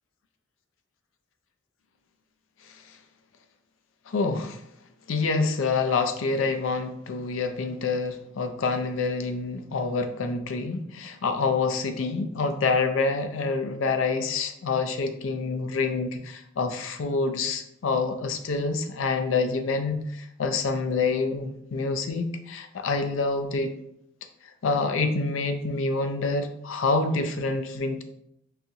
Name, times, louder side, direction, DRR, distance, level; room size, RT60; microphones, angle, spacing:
voice 1, 4.1-4.6 5.1-20.0 20.4-23.7 24.6-28.0, left 4 dB, 85° left, 8 dB, 0.4 m, -27 dB
3.8 x 2.8 x 2.7 m, 0.75 s
head